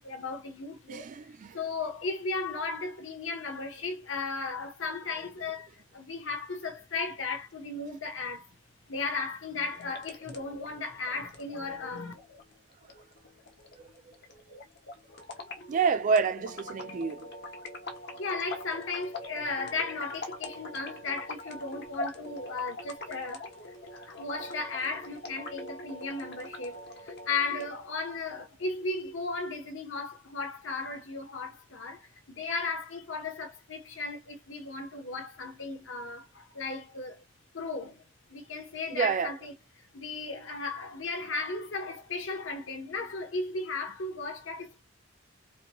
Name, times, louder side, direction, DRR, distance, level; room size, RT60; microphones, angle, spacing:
voice 1, 0.0-1.2 1.5-8.5 8.9-12.1 18.2-37.2 37.5-38.0 38.3-39.5 39.9-44.8, left 3 dB, 85° left, 1.1 m, -35 dB
voice 2, 0.9-1.6 15.7-17.3 38.9-39.3, right 5 dB, 40° right, 0.3 m, -28 dB
sound 1, 9.7-27.7, left 1 dB, 60° left, 1.2 m, -43 dB
4.6 x 3.0 x 2.3 m
head